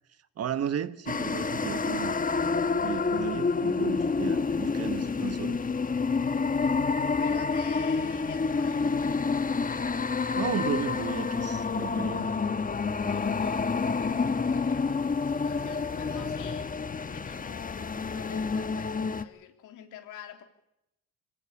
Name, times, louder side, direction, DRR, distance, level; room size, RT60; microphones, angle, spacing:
voice 1, 0.4-2.2 2.8-5.6 10.4-12.3, right 8 dB, 55° right, 1.3 m, -34 dB
sound 1, 1.1-19.2, left 4 dB, 30° left, 1.3 m, -28 dB
voice 2, 7.2-10.1 12.2-20.4, left 10 dB, 90° left, 3.5 m, -47 dB
25.0 x 17.0 x 8.6 m
cardioid pair, 90°, 30 cm